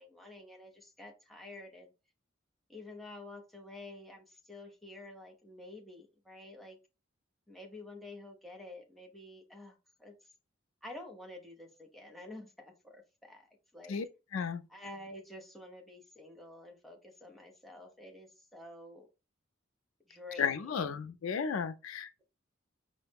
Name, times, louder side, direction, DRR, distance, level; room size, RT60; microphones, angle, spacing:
voice 1, 0.0-1.9 2.7-6.8 7.5-10.1 10.8-13.5 13.7-14.0 14.7-19.1 20.1-20.6, left 2 dB, ahead, 0.7 m, -49 dB
voice 2, 14.3-14.6 20.4-22.2, left 6 dB, 80° left, 0.4 m, -34 dB
4.6 x 2.1 x 3.4 m
head